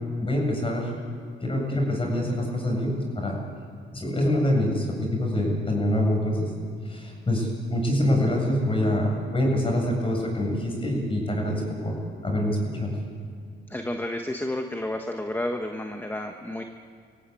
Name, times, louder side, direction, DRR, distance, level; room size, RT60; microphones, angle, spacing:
voice 1, 0.2-0.9 1.4-3.4 3.9-6.5 6.9-11.9 12.2-12.9, left 1 dB, 25° left, 0 dB, 7.6 m, -25 dB
voice 2, 13.7-16.6, left 1 dB, 10° left, 4 dB, 1.4 m, -31 dB
24.5 x 16.5 x 8.6 m, 2.2 s
cardioid pair, 90°, 20 cm